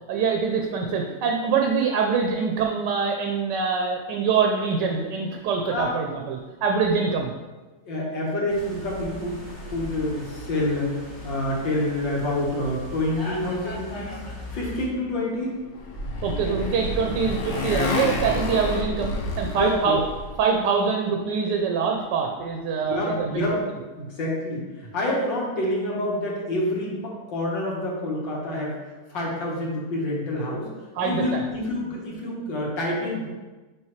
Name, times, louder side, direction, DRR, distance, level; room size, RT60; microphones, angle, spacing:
voice 1, 0.1-7.3 16.2-20.0 20.4-23.6 31.0-31.4, right 5 dB, 80° right, 2 dB, 1.2 m, -24 dB
voice 2, 7.8-9.4 9.7-14.2 14.5-15.5 16.4-16.7 17.2-17.3 19.5-20.0 22.7-23.6 24.0-28.8 29.1-30.7 31.0-33.3, left 1 dB, 80° left, -4 dB, 2.2 m, -27 dB
sound 1, 8.5-14.9, left 1 dB, 30° left, 1.6 m, -39 dB
Motorcycle, 15.4-20.4, left 2 dB, 55° left, 0.9 m, -29 dB
6.3 x 5.1 x 3.1 m, 1.2 s
omnidirectional pair, 2.0 m